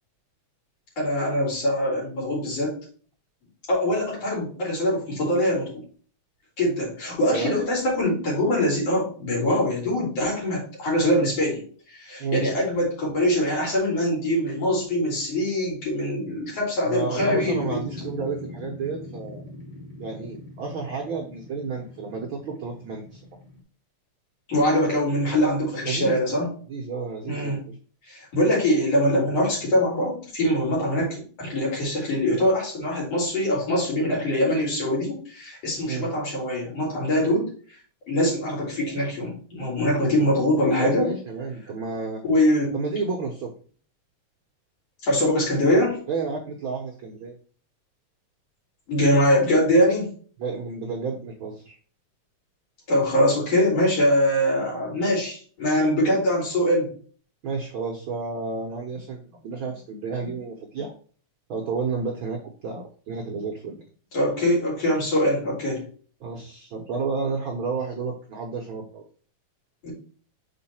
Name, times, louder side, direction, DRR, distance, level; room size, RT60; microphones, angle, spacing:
voice 1, 1.0-2.8 3.7-5.8 6.6-11.6 11.9-17.8 24.5-26.5 27.3-27.6 28.1-37.5 38.1-41.1 42.2-42.8 45.0-46.0 48.9-50.1 52.9-56.9 64.1-65.8 69.8-69.9, left 1 dB, 55° left, -4 dB, 4.3 m, -23 dB
voice 2, 16.8-19.4 20.0-23.2 25.9-26.2 26.7-27.6 35.9-36.1 40.8-42.2 42.7-43.5 46.1-47.3 50.4-51.8 57.4-61.0 61.5-63.8 66.2-69.0, right 4 dB, 65° right, 1 dB, 1.3 m, -31 dB
sound 1, 17.1-23.6, left 2 dB, 20° left, 2.0 m, -40 dB
6.2 x 4.4 x 4.3 m, 0.43 s
omnidirectional pair, 3.4 m